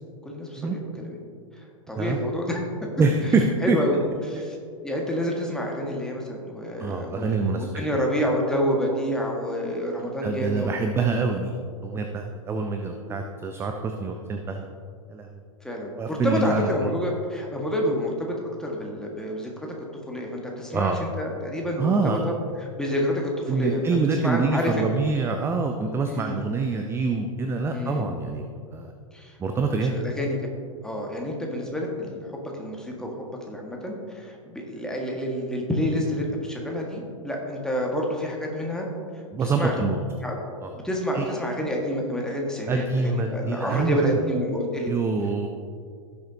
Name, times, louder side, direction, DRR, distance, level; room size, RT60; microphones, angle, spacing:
voice 1, 0.2-1.2 1.9-2.6 3.6-4.0 4.2-4.6 4.8-11.1 13.1-13.2 15.6-18.3 18.6-19.5 20.1-22.3 22.7-23.8 24.2-25.0 26.1-26.4 27.7-28.1 29.1-29.3 29.9-30.3 30.8-38.9 39.4-39.7 40.2-40.4 40.8-44.9, equal, 5° left, -1 dB, 1.6 m, -28 dB
voice 2, 3.0-3.8 4.3-4.5 6.8-7.8 10.2-11.5 11.8-14.7 15.1-15.4 16.0-16.9 20.7-21.0 21.8-22.3 23.5-28.4 28.7-28.9 29.4-30.0 39.3-40.0 40.6-40.7 41.1-41.3 42.7-44.1 44.9-45.5, right 4 dB, 15° right, 4 dB, 0.6 m, -25 dB
16.5 x 7.0 x 2.8 m, 2.2 s
figure-of-eight pair, 95°, 17 cm